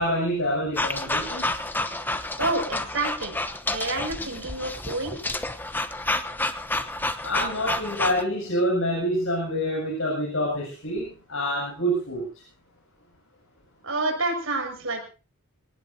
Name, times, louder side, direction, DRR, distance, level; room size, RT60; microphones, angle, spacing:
voice 1, 0.0-1.6 7.2-12.3, equal, 70° left, -3 dB, 7.1 m, -27 dB
sound 1, 0.8-8.2, left 2 dB, 10° left, 0.9 m, -29 dB
voice 2, 2.4-3.4 3.6-5.2 13.8-15.0, right 2 dB, 70° right, 2 dB, 6.1 m, -28 dB
24.5 x 18.5 x 2.8 m, 0.34 s
head